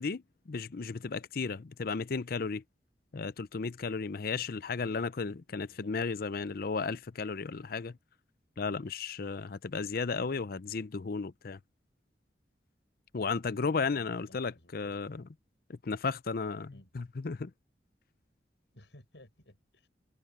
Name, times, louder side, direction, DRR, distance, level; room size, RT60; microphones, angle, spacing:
voice 1, 0.0-2.6 3.1-8.0 8.6-11.6 13.1-15.2 15.7-17.5, left 4 dB, 55° left, 0.6 m, -34 dB
voice 2, 4.8-5.1 5.7-5.9 13.7-15.2 16.7-16.9 18.7-19.9, left 1 dB, 90° left, 5.4 m, -57 dB
head